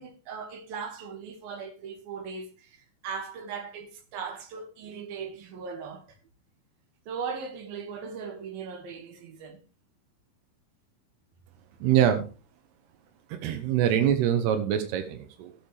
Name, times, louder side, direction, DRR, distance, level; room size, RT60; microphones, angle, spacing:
voice 1, 0.0-6.2 7.1-9.6, right 6 dB, 65° right, 3.6 m, -38 dB
voice 2, 11.8-12.3 13.3-15.5, right 10 dB, 90° right, 3.2 m, -24 dB
18.5 x 6.8 x 3.4 m
omnidirectional pair, 4.6 m